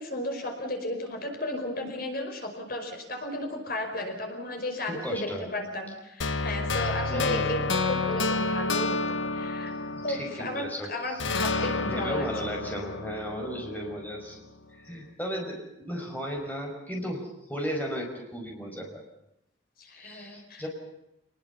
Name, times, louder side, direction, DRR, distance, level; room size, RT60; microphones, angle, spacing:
voice 1, 0.0-9.0 9.3-9.7 10.0-12.3 19.8-20.7, left 1 dB, 50° left, 4 dB, 5.2 m, -34 dB
voice 2, 4.9-5.5 7.1-7.7 9.7-11.5 11.8-14.4 14.7-15.6 15.9-19.0 19.9-20.7, equal, 10° left, 1 dB, 5.3 m, -35 dB
sound 1, 6.2-10.7 11.2-14.3, left 3 dB, 90° left, 1.3 m, -30 dB
28.0 x 20.5 x 7.0 m, 0.83 s
head